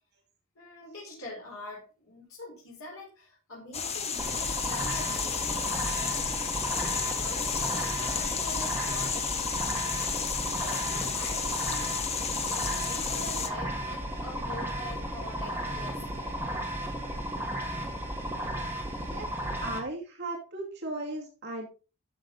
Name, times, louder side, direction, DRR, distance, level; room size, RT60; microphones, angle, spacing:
voice 1, 0.6-9.8 10.5-12.1 12.5-16.4, left 2 dB, 75° left, -4 dB, 4.2 m, -45 dB
sound 1, 3.7-13.5, left 6 dB, 30° left, 1.0 m, -32 dB
sound 2, 4.2-19.8, right 1 dB, 10° right, 1.7 m, -34 dB
voice 2, 19.6-21.7, right 2 dB, 50° right, -1 dB, 2.4 m, -36 dB
12.5 x 6.4 x 3.9 m, 0.33 s
head